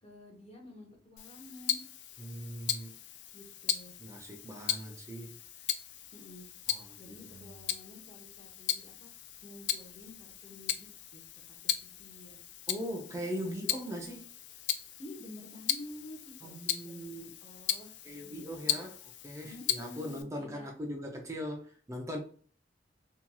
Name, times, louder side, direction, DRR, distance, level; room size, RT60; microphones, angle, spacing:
voice 1, 0.0-1.8 3.3-3.9 6.1-6.5 7.0-9.1 9.4-11.2 11.5-12.4 13.1-13.2 15.0-17.9 18.2-18.9 19.4-20.7, left 2 dB, 35° left, 0.7 m, -50 dB
Tick-tock, 1.2-20.2, left 11 dB, 65° left, 0.3 m, -38 dB
voice 2, 2.2-2.9 4.0-5.3 6.7-7.6 12.7-14.2 16.4-17.3 18.0-19.0 19.2-22.2, equal, 15° right, 0.4 m, -40 dB
2.8 x 2.6 x 2.2 m
head